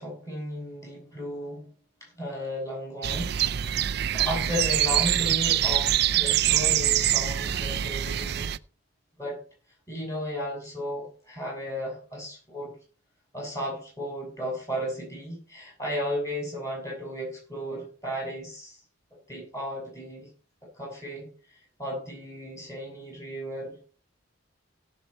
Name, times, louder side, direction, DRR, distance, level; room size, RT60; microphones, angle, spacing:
voice 1, 0.0-1.7 2.2-3.7 4.1-8.5 9.2-9.4 9.9-12.7 13.3-18.8 19.3-20.3 20.7-21.3 21.8-23.8, equal, 15° left, -1 dB, 7.1 m, -34 dB
sound 1, 3.0-8.6, right 12 dB, 55° right, 0.4 m, -25 dB
17.0 x 6.9 x 4.4 m, 0.38 s
head